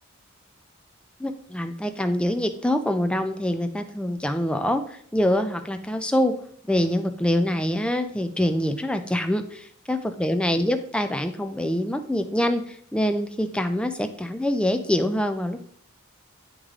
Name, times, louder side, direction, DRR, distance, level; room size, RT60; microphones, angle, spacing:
voice 1, 1.2-6.3 6.7-15.7, left 1 dB, 5° left, 7 dB, 0.4 m, -25 dB
9.6 x 3.2 x 3.7 m, 0.63 s
head